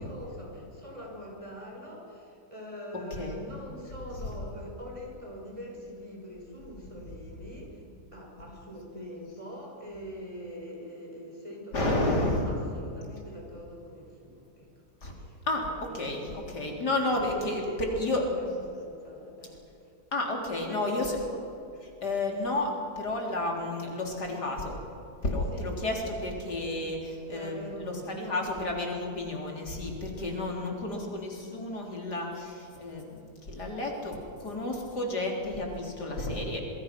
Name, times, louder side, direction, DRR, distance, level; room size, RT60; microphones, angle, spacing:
voice 1, 0.0-7.8 8.1-14.7 15.1-15.4 15.9-19.6 20.4-21.5 25.4-25.8 26.3-26.4 27.3-28.8 30.1-30.8, equal, 20° right, -1 dB, 5.9 m, -44 dB
voice 2, 11.7-12.5 15.0-15.1 15.5-15.7 15.9-18.2 20.1-21.2 22.0-24.8 25.2-36.6, left 2 dB, 85° left, 0 dB, 4.4 m, -31 dB
26.0 x 23.5 x 6.1 m, 2.7 s
omnidirectional pair, 1.7 m